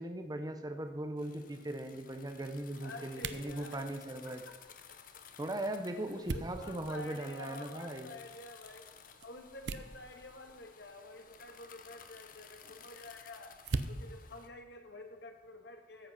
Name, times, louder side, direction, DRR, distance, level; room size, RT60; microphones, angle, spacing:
voice 1, 0.0-4.4 5.4-8.1, right 1 dB, 20° right, 6 dB, 0.8 m, -39 dB
sound 1, 0.7-15.6, right 3 dB, 90° right, 0.7 m, -46 dB
sound 2, 1.2-14.5, left 7 dB, 50° left, 0.9 m, -56 dB
voice 2, 2.8-3.9 4.2-5.2 5.8-13.6 13.9-16.1, left 2 dB, 75° left, 5 dB, 1.7 m, -50 dB
14.0 x 7.7 x 5.8 m, 1.2 s
head